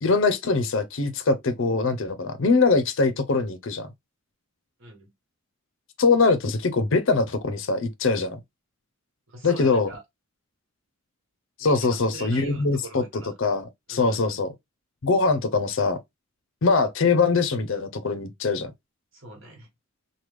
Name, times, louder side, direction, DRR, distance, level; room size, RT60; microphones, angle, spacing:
voice 1, 0.0-3.9 6.0-8.4 9.4-9.9 11.6-13.0 13.4-14.5 15.0-16.0 16.6-18.7, left 4 dB, 60° left, 0.6 m, -22 dB
voice 2, 4.8-5.1 9.3-10.0 11.6-13.3 13.9-14.4 19.1-19.7, right 3 dB, 60° right, 1.3 m, -43 dB
3.1 x 2.2 x 3.2 m
head